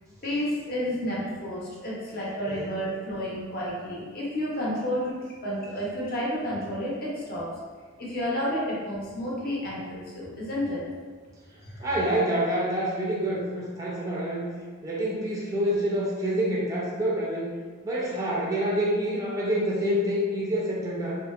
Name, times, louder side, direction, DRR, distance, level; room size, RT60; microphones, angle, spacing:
voice 1, 0.2-5.2 5.4-7.5 8.0-10.8 11.6-11.9, equal, 45° left, -6 dB, 0.6 m, -31 dB
voice 2, 11.8-14.4 14.8-17.5 17.8-21.2, equal, 15° right, -5 dB, 0.3 m, -27 dB
2.6 x 2.0 x 2.3 m, 1.6 s
head